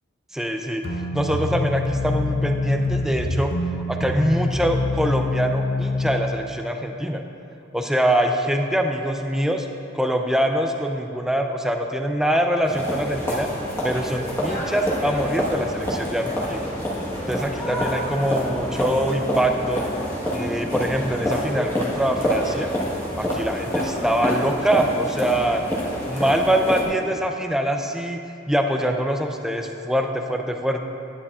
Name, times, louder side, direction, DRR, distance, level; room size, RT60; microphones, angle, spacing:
voice 1, 0.3-3.5 3.9-7.2 7.7-9.7 9.9-13.5 13.8-16.7 17.3-19.8 20.3-22.7 23.2-25.6 26.1-28.2 28.5-30.8, right 1 dB, 5° right, 4 dB, 0.4 m, -24 dB
sound 1, 0.8-6.2, left 2 dB, 55° left, 0.8 m, -25 dB
sound 2, 12.6-26.8, equal, 10° left, 1.3 m, -27 dB
10.5 x 9.9 x 2.4 m, 2.7 s
head